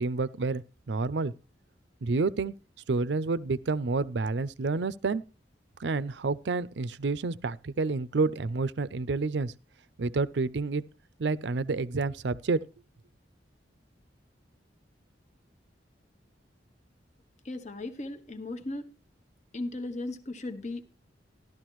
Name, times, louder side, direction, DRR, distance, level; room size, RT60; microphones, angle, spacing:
voice 1, 0.0-1.3 2.0-2.5 2.9-5.2 5.8-9.5 10.0-10.8 11.2-12.6, right 3 dB, 70° right, 0.5 m, -29 dB
voice 2, 17.4-18.8 19.5-20.8, left 2 dB, 40° left, 1.0 m, -36 dB
13.0 x 12.0 x 3.1 m
head